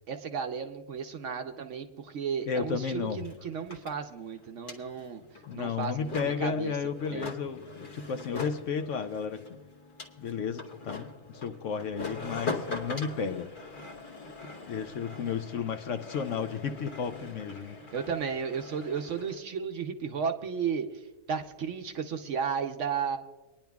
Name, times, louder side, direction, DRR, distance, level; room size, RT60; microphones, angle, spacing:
voice 1, 0.1-5.2 5.5-6.7 7.1-7.3 17.9-20.9 21.3-23.2, right 6 dB, 60° right, 6 dB, 0.9 m, -34 dB
voice 2, 2.5-3.2 5.5-9.4 10.2-13.5 14.7-17.8, left 6 dB, 65° left, 8 dB, 0.9 m, -33 dB
sound 1, 2.5-2.6 2.8-19.4, left 3 dB, 40° left, 1.0 m, -42 dB
25.0 x 10.5 x 2.3 m, 1.1 s
omnidirectional pair, 1.6 m